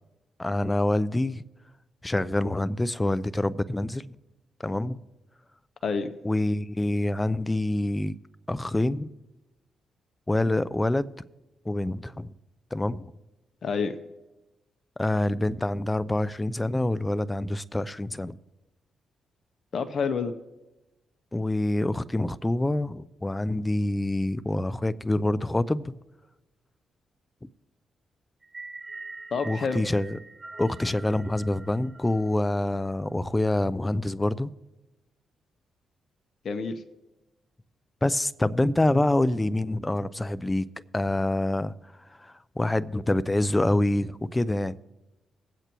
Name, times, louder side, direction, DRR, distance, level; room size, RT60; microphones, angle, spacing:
voice 1, 0.4-1.4 2.0-4.2 4.6-5.0 6.2-8.2 8.5-9.1 10.3-11.1 11.6-12.3 12.7-13.1 15.0-18.4 21.3-25.9 27.4-27.5 29.4-30.2 30.6-34.5 38.0-40.7 40.9-41.7 42.2-44.8, left 1 dB, 15° left, 0.5 m, -26 dB
voice 2, 13.6-13.9 19.7-20.3 29.3-29.8 36.4-36.8, left 5 dB, 55° left, 0.7 m, -28 dB
sound 1, 28.4-32.7, right 3 dB, 35° right, 3.1 m, -44 dB
21.0 x 8.1 x 3.0 m
supercardioid pair, 65°, 0 cm